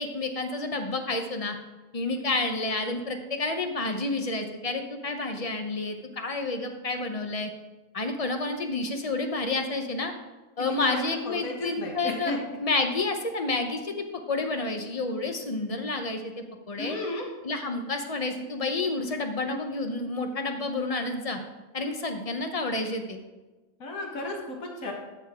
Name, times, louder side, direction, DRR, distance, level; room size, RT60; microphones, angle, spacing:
voice 1, 0.0-1.6 1.9-7.5 7.9-10.1 10.6-13.9 14.3-17.0 17.4-21.4 21.7-23.2, left 3 dB, 30° left, 5 dB, 0.8 m, -30 dB
voice 2, 10.8-12.4 16.8-17.3 23.8-24.9, left 2 dB, 75° left, 1 dB, 1.9 m, -33 dB
13.0 x 6.8 x 3.6 m, 1.2 s
omnidirectional pair, 1.5 m